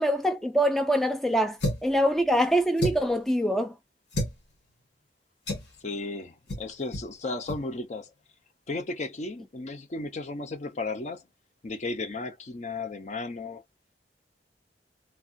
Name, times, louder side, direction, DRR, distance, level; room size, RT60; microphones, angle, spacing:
voice 1, 0.0-3.7, equal, ahead, 0.3 m, -24 dB
sound 1, 1.6-2.0 2.8-3.2 4.1-4.4 5.5-5.7 6.5-6.7 6.9-7.1 7.4-7.6, left 1 dB, 70° left, 1.4 m, -30 dB
voice 2, 5.8-8.1 8.7-11.3 11.6-13.6, left 3 dB, 40° left, 0.6 m, -34 dB
3.4 x 2.3 x 2.5 m
head